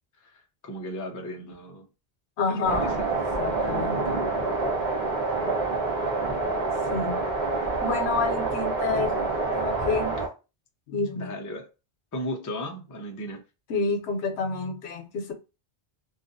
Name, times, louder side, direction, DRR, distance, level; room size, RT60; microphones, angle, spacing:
voice 1, 0.2-1.9 2.5-3.1 3.6-3.9 11.1-11.7 12.1-13.4, equal, 30° left, 0.3 m, -36 dB
voice 2, 2.4-3.0 3.4-4.2 6.9-7.2 7.8-10.2 10.9-11.3 13.7-15.3, left 4 dB, 80° left, 0.9 m, -29 dB
sound 1, 2.6-10.3, right 3 dB, 45° right, 1.0 m, -27 dB
2.7 x 2.3 x 2.5 m
omnidirectional pair, 1.1 m